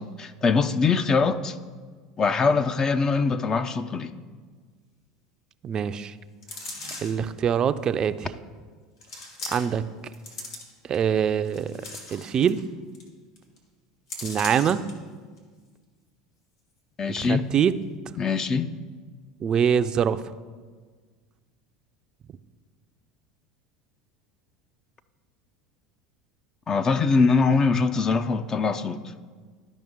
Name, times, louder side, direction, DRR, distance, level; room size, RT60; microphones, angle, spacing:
voice 1, 0.0-1.6 2.2-4.1 17.0-17.5 18.2-18.7 26.7-29.0, left 4 dB, 30° left, 11 dB, 0.4 m, -23 dB
voice 2, 5.6-6.1 7.0-8.3 9.5-9.8 10.9-11.7 12.1-12.7 14.2-14.8 17.1-17.8 19.4-20.2, right 8 dB, 35° right, 12 dB, 0.4 m, -24 dB
moving coat hangers in an metal suport, 6.4-7.3 8.0-8.1 9.0-9.8 10.1-10.9 11.4-12.6 12.9-13.1 13.4-13.6 14.1-14.9 15.4-15.5, left 2 dB, 85° left, 1.6 m, -38 dB
12.5 x 5.2 x 3.6 m, 1.5 s
hypercardioid pair, 85°, 2 cm